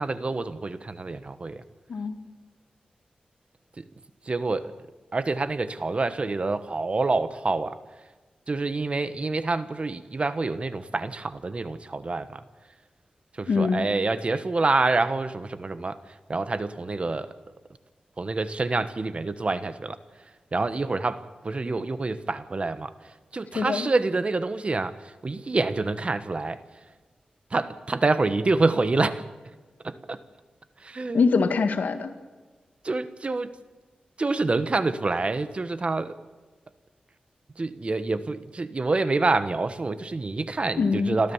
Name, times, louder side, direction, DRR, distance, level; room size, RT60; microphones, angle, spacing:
voice 1, 0.0-1.6 3.8-3.9 4.2-4.7 5.1-7.8 8.5-12.5 13.3-17.4 18.2-26.6 27.5-29.2 29.8-30.2 30.8-31.2 32.8-33.5 34.2-36.2 37.5-41.3, right 3 dB, 45° right, 12 dB, 1.3 m, -27 dB
voice 2, 1.9-2.2 13.5-13.9 23.6-23.9 31.1-32.1 40.8-41.2, left 4 dB, 85° left, 8 dB, 1.8 m, -23 dB
29.0 x 13.5 x 7.3 m, 1.3 s
cardioid pair, 65°, 3 cm